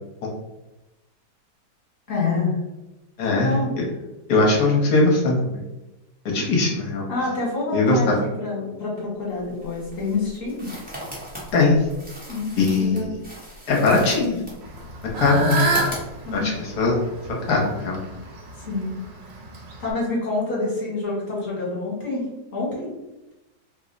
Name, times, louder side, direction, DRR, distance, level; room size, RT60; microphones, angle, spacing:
voice 1, 2.1-2.6 3.3-3.7 7.1-10.7 12.3-13.1 15.3-15.6 16.2-16.5 18.5-18.9 19.8-22.2 22.5-22.9, left 3 dB, 50° left, -5 dB, 1.5 m, -27 dB
voice 2, 3.2-3.8 4.3-5.6 6.3-7.1 7.7-8.2 11.5-11.8 12.6-13.1 13.7-14.4 15.2-15.6 16.3-16.5 16.8-17.0 17.5-18.0, left 3 dB, 65° left, -1 dB, 1.3 m, -20 dB
sound 1, 9.3-16.5, equal, 10° right, 0.6 m, -38 dB
Fowl / Bird, 14.6-19.9, right 2 dB, 80° right, 1.4 m, -29 dB
3.3 x 2.0 x 3.7 m, 1.0 s
omnidirectional pair, 1.9 m